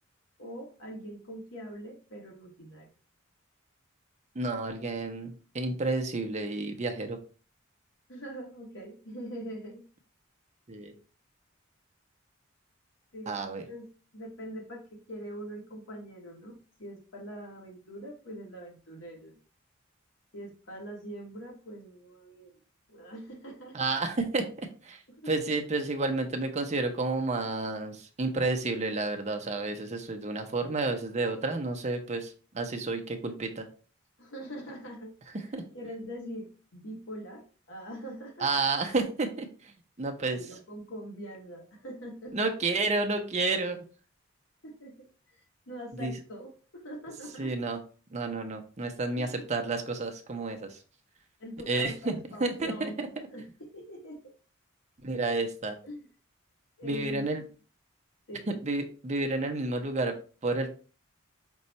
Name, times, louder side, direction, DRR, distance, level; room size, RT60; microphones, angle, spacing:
voice 1, 0.4-2.9 8.1-9.9 13.1-13.4 13.7-19.4 20.3-22.6 22.9-23.8 25.1-25.6 34.2-35.1 35.7-38.5 40.3-42.4 44.6-45.1 45.7-47.5 49.1-49.6 51.4-53.0 53.3-54.3 55.8-56.1 56.8-57.3 58.3-58.5, equal, 75° left, -1 dB, 1.5 m, -43 dB
voice 2, 4.4-7.2 10.7-10.9 13.3-13.6 23.7-25.0 25.3-33.7 35.5-35.6 38.4-39.5 40.0-40.4 42.3-43.9 46.0-46.1 47.4-47.8 48.1-50.8 51.7-53.3 55.0-55.8 56.8-57.4 58.5-60.1 60.4-60.7, right 3 dB, 35° right, 5 dB, 0.6 m, -30 dB
5.3 x 2.3 x 4.0 m, 0.37 s
head